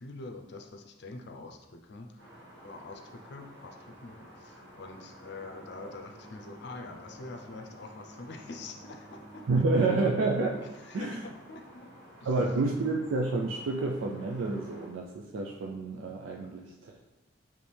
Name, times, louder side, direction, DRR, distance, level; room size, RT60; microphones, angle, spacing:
voice 1, 0.0-2.2 2.6-9.4 10.6-11.9 12.2-12.3 16.3-16.6, left 3 dB, 60° left, 4 dB, 0.5 m, -45 dB
sound 1, 2.2-14.9, equal, 65° right, 1.5 m, -52 dB
Bowed string instrument, 5.3-10.2, equal, 35° right, 0.7 m, -54 dB
voice 2, 9.5-10.6 10.9-11.3 12.3-16.9, right 3 dB, 80° right, 1 dB, 0.4 m, -29 dB
4.3 x 3.1 x 3.4 m, 1.0 s
head